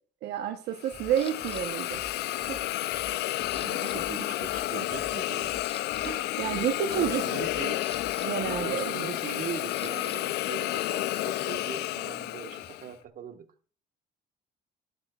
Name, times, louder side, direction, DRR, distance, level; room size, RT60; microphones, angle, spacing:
voice 1, 0.2-2.0 2.5-2.6 6.0-7.2 8.2-9.1, right 10 dB, 80° right, 0.9 m, -30 dB
Hiss, 0.8-12.9, left 16 dB, 75° left, 0.4 m, -31 dB
sound 1, 0.9-8.9, equal, 10° left, 2.2 m, -52 dB
Camera, 1.2-1.6 2.2-2.6 2.9-4.0 4.2-4.4 5.0-5.1 5.5-6.1 7.3-10.2 10.5-13.1, left 5 dB, 35° left, 1.6 m, -48 dB
voice 2, 3.5-5.6 6.5-7.8 8.5-13.5, right 8 dB, 55° right, 1.3 m, -40 dB
13.0 x 12.0 x 2.4 m
cardioid pair, 110°, 17 cm